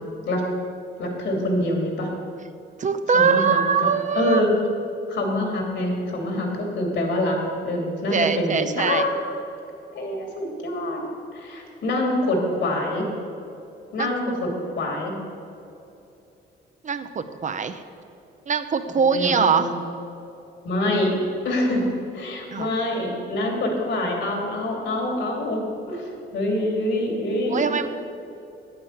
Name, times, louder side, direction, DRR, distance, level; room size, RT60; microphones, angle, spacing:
voice 1, 1.0-2.1 3.1-3.6 4.1-4.5 5.1-9.2 9.9-11.0 11.3-13.1 13.9-15.2 19.0-19.8 20.6-21.1 21.4-21.9 22.1-27.7, left 1 dB, 70° left, 1 dB, 2.7 m, -25 dB
voice 2, 2.8-4.4 8.1-9.0 14.0-14.1 16.8-17.8 18.5-19.8 22.5-22.7 27.5-27.9, right 6 dB, 40° right, 9 dB, 0.6 m, -22 dB
8.6 x 8.5 x 6.6 m, 2.8 s
cardioid pair, 90°, 20 cm